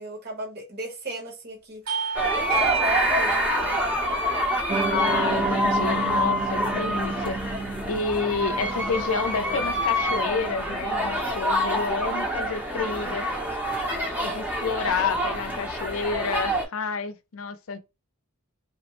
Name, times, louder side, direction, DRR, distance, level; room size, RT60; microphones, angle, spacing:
voice 1, 0.0-1.8 2.2-3.3, right 2 dB, 50° right, 1.1 m, -37 dB
Bell / Doorbell, 1.9-6.9, right 7 dB, 65° right, 1.4 m, -32 dB
sound 1, 2.1-16.6, equal, 10° right, 0.7 m, -26 dB
Piano, 4.7-11.2, right 4 dB, 30° right, 0.3 m, -33 dB
voice 2, 4.9-7.4 7.9-13.3 14.2-17.8, left 4 dB, 70° left, 0.5 m, -29 dB
3.4 x 2.0 x 3.0 m
head